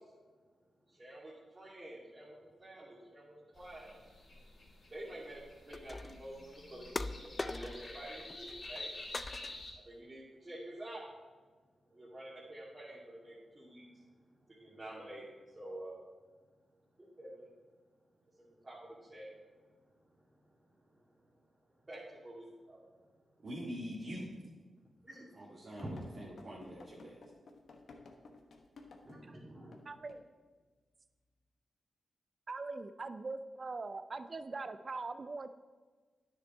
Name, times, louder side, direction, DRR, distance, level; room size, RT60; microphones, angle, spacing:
voice 1, 1.0-4.0 4.9-8.9 9.8-11.0 12.0-13.8 14.6-15.2 15.5-16.0 17.2-17.5 18.6-18.8 19.1-19.3 21.9-22.8 25.0-25.2 25.8-25.9 29.0-29.9, right 1 dB, 30° right, -8 dB, 2.4 m, -48 dB
sound 1, 3.5-9.7, left 2 dB, 50° left, 3.0 m, -49 dB
sound 2, 5.7-6.3 7.0-8.0 8.3-8.9 9.1-9.8, left 2 dB, 30° left, 0.4 m, -41 dB
voice 2, 23.4-24.3 25.4-27.0, equal, 65° right, -7 dB, 1.9 m, -44 dB
Running Footsteps on Wood Stairs, 25.8-29.3 29.7-29.8 30.1-30.3, left 3 dB, 70° left, 1.0 m, -54 dB
voice 3, 29.9-30.2 32.5-35.5, right 3 dB, 50° right, 11 dB, 0.4 m, -41 dB
9.7 x 6.6 x 4.2 m, 1.4 s
cardioid pair, 50°, 0 cm